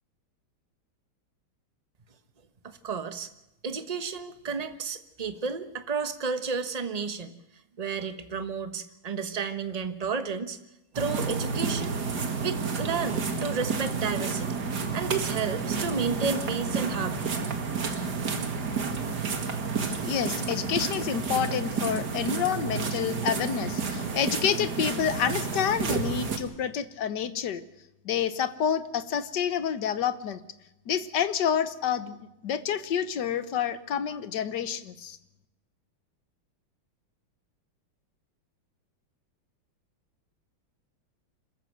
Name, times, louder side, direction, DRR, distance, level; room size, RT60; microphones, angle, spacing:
voice 1, 2.6-3.3 3.6-7.3 7.8-10.6 10.9-11.9 12.4-14.6 14.9-17.5, right 5 dB, 25° right, 9 dB, 1.0 m, -32 dB
sound 1, 10.9-26.4, right 5 dB, 50° right, 2.4 m, -30 dB
voice 2, 20.0-27.6 28.0-30.4 30.9-32.2 32.4-35.2, left 8 dB, 60° left, 12 dB, 1.6 m, -28 dB
26.5 x 14.5 x 7.9 m, 0.90 s
omnidirectional pair, 2.4 m